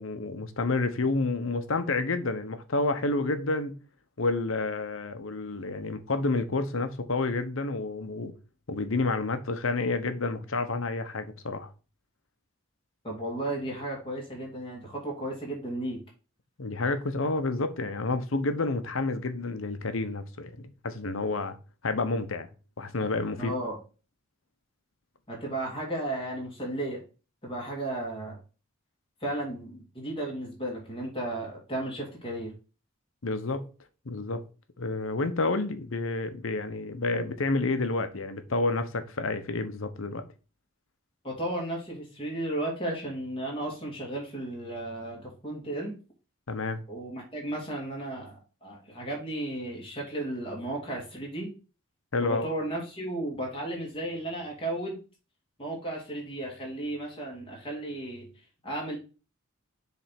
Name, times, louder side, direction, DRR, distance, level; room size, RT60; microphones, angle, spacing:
voice 1, 0.0-3.7 4.2-8.3 8.7-11.7 16.6-21.6 21.8-22.5 22.8-23.5 33.2-33.6 34.1-34.4 34.8-40.2 46.5-46.8 52.1-52.5, left 3 dB, 75° left, 0.9 m, -29 dB
voice 2, 13.0-16.0 23.4-23.8 25.3-27.0 27.4-28.4 29.2-32.5 41.2-45.9 46.9-51.5 52.2-55.0 55.6-58.3 58.6-59.0, right 1 dB, 25° left, 2.8 m, -34 dB
7.3 x 3.4 x 5.9 m
head